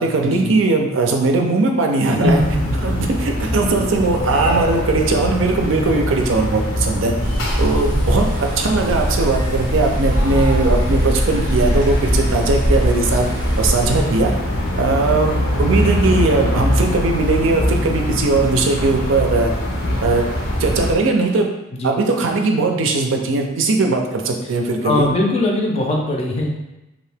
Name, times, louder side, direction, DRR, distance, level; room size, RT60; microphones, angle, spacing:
voice 1, 0.0-2.4 2.8-7.1 7.6-13.3 13.6-14.3 14.8-19.5 20.0-20.3 20.6-21.5 21.8-25.1, right 3 dB, 70° right, 2 dB, 0.4 m, -19 dB
voice 2, 2.1-3.1 7.0-7.4 21.7-21.9 24.8-26.5, left 1 dB, 30° left, 0 dB, 0.5 m, -21 dB
sound 1, 2.2-20.9, left 1 dB, 85° left, 0.7 m, -23 dB
sound 2, 7.2-14.0, equal, 15° right, 0.7 m, -22 dB
2.8 x 2.5 x 3.3 m, 0.93 s
head